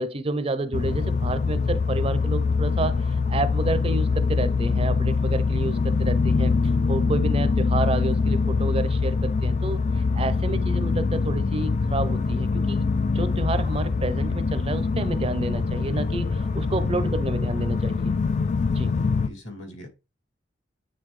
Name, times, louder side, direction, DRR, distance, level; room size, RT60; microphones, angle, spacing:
voice 1, 0.0-6.5 6.9-12.8 13.1-18.1 18.7-18.9, right 2 dB, 30° right, 0.5 m, -29 dB
sound 1, 0.7-19.3, left 4 dB, 40° left, 0.3 m, -24 dB
voice 2, 16.6-17.1 18.9-19.9, left 1 dB, 75° left, 2.4 m, -39 dB
9.3 x 3.9 x 3.1 m
head